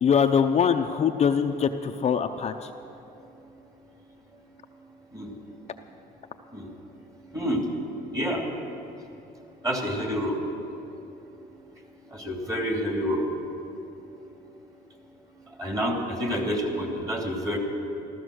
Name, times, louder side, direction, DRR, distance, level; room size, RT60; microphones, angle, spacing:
voice 1, 0.0-2.7, left 7 dB, 40° left, 6 dB, 0.6 m, -23 dB
voice 2, 9.6-10.4 12.1-13.2 15.6-15.9 16.2-17.6, equal, 20° right, 1 dB, 2.7 m, -28 dB
14.0 x 14.0 x 6.4 m, 3.0 s
cardioid pair, 110°, 17 cm